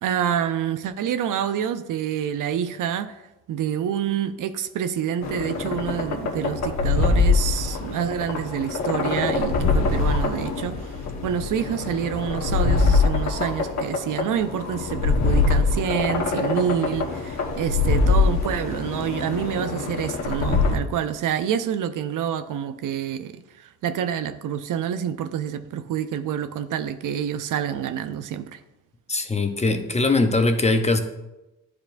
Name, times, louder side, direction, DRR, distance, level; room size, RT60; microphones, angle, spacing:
voice 1, 0.0-3.2 3.5-28.6, right 9 dB, 55° right, 0.5 m, -27 dB
sound 1, 5.2-20.8, left 4 dB, 45° left, 1.4 m, -23 dB
voice 2, 29.1-31.0, left 3 dB, 20° left, 0.7 m, -21 dB
10.0 x 4.8 x 2.6 m
cardioid pair, 80°, 37 cm